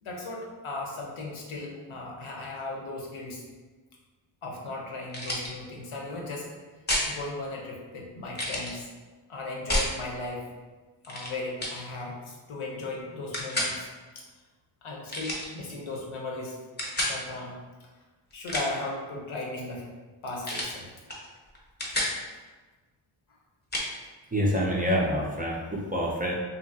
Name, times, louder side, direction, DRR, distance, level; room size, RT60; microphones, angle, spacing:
voice 1, 0.0-3.4 4.4-6.5 7.1-8.9 9.3-10.4 11.1-13.9 14.1-14.2 14.8-16.6 17.0-17.9 18.3-19.8 20.2-20.9, left 2 dB, 75° left, -1 dB, 0.8 m, -36 dB
sound 1, 5.1-5.5 6.9-7.1 8.3-8.7 9.7-9.9 11.0-11.3 11.6-11.8 13.3-13.7 15.1-15.5 16.8-17.2 18.3-18.8 20.4-20.8 21.1-21.3 21.5-22.2 23.7-23.9, left 1 dB, 20° left, 0.7 m, -29 dB
voice 2, 24.3-26.3, equal, 20° right, -4 dB, 0.3 m, -27 dB
2.8 x 2.6 x 2.6 m, 1.3 s
cardioid pair, 75°, 49 cm